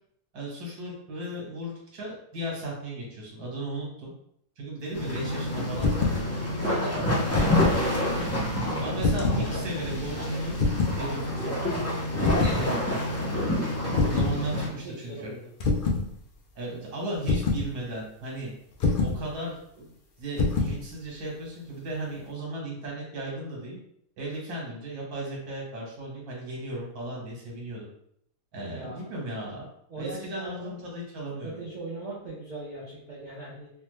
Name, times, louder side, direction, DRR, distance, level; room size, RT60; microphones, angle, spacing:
voice 1, 0.3-4.1 4.6-8.3 8.8-10.6 11.0-11.5 12.4-13.0 14.0-15.3 16.5-18.5 19.0-19.9 20.2-23.8 24.2-27.9 28.5-29.7 29.9-31.5, right 1 dB, 80° right, -3 dB, 1.6 m, -36 dB
sound 1, 4.9-14.7, left 1 dB, 20° left, 0.4 m, -28 dB
sound 2, 5.8-6.2 7.1-7.8 9.0-9.5 10.6-11.0 12.2-12.6 14.0-14.4 15.6-16.1 17.3-17.7 18.8-19.2 20.4-20.8, left 3 dB, 80° left, 0.4 m, -25 dB
voice 2, 12.3-12.8 14.3-14.5 14.8-15.5 28.8-29.0 29.9-30.9 31.4-33.7, right 2 dB, 40° right, -7 dB, 0.7 m, -40 dB
3.3 x 2.2 x 3.1 m, 0.71 s
omnidirectional pair, 1.6 m